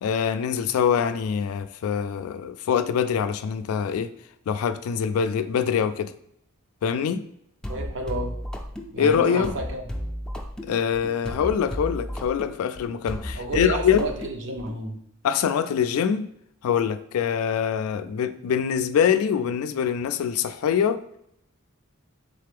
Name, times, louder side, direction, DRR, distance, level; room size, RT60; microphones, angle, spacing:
voice 1, 0.0-4.1 4.5-6.1 6.8-7.3 9.0-9.5 10.7-14.1 15.2-16.3 16.6-21.0, left 7 dB, 80° left, 0.3 m, -24 dB
sound 1, 7.6-14.8, equal, 5° left, 0.4 m, -34 dB
voice 2, 7.7-8.4 8.9-9.8 13.3-15.0, right 2 dB, 60° right, 0.6 m, -31 dB
3.9 x 3.3 x 3.4 m
head